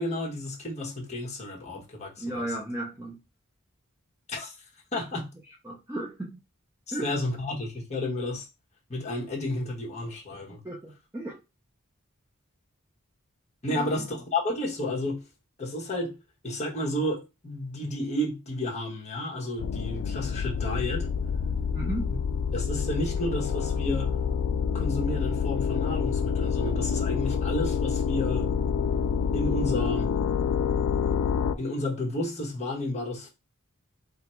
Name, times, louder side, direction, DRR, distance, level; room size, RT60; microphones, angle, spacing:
voice 1, 0.0-2.5 4.3-4.6 4.9-5.3 6.9-8.5 8.9-10.6 13.6-15.3 15.6-16.2 16.4-21.1 22.5-24.2 24.7-28.5 29.3-30.1 31.6-33.3, left 1 dB, 30° left, 1.2 m, -31 dB
voice 2, 2.2-3.2 5.0-5.1 5.6-6.4 6.9-7.1 10.6-11.4 13.7-14.0 21.7-22.1, right 1 dB, 10° right, 0.6 m, -35 dB
sound 1, 19.6-31.6, left 6 dB, 70° left, 0.3 m, -27 dB
4.1 x 2.1 x 4.3 m
head